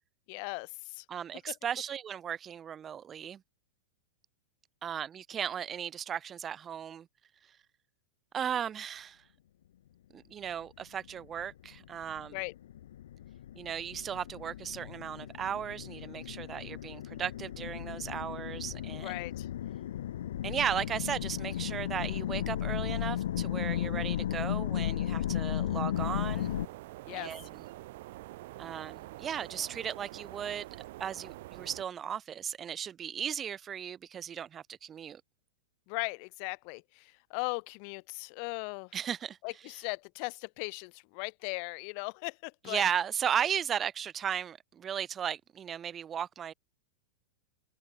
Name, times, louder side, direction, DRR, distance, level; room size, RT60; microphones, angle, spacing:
voice 1, 0.3-1.0 1.5-1.6 12.3-12.5 19.0-19.5 27.1-27.3 35.9-38.9 39.4-42.8, left 40 dB or more, 35° left, 1.5 m, -38 dB
voice 2, 1.1-3.4 4.8-7.1 8.3-9.2 10.1-12.4 13.6-19.2 20.4-26.5 27.1-27.6 28.6-30.7 31.0-35.2 38.9-39.4 42.7-46.5, right 8 dB, 15° right, 2.7 m, -36 dB
sound 1, 11.2-26.7, left 11 dB, 75° left, 6.5 m, -35 dB
sound 2, 25.9-31.8, right 18 dB, 50° right, 3.2 m, -46 dB
supercardioid pair, 170°, 0 cm